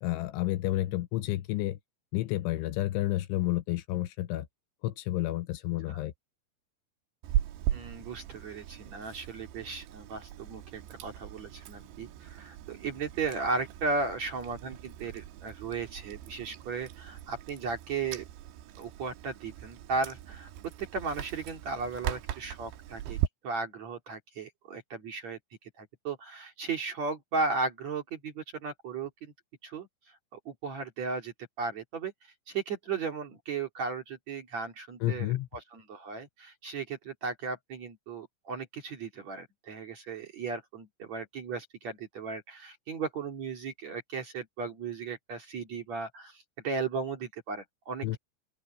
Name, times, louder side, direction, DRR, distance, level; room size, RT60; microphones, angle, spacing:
voice 1, 0.0-1.8 2.1-4.5 4.8-6.1 35.0-35.5 48.0-48.2, left 15 dB, 80° left, 3.1 m, -30 dB
Chewing mastication, 7.2-23.3, right 12 dB, 70° right, 3.1 m, -38 dB
voice 2, 7.7-18.2 18.8-20.5 20.8-23.2 23.4-25.4 25.8-29.3 29.6-29.9 30.4-32.1 32.5-48.2, right 4 dB, 45° right, 2.9 m, -36 dB
open air
omnidirectional pair, 5.8 m